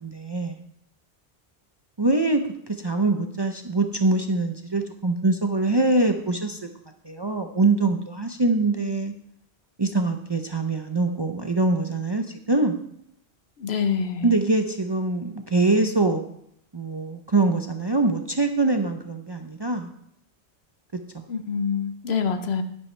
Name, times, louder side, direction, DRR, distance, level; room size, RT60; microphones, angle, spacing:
voice 1, 0.0-0.6 2.0-6.6 7.0-9.1 9.8-12.8 14.2-16.2 16.7-19.9 21.1-21.2, right 2 dB, 30° right, 5 dB, 0.5 m, -23 dB
voice 2, 13.6-14.3 21.3-22.6, left 6 dB, 70° left, 9 dB, 1.1 m, -26 dB
11.0 x 10.0 x 3.3 m, 0.74 s
omnidirectional pair, 1.1 m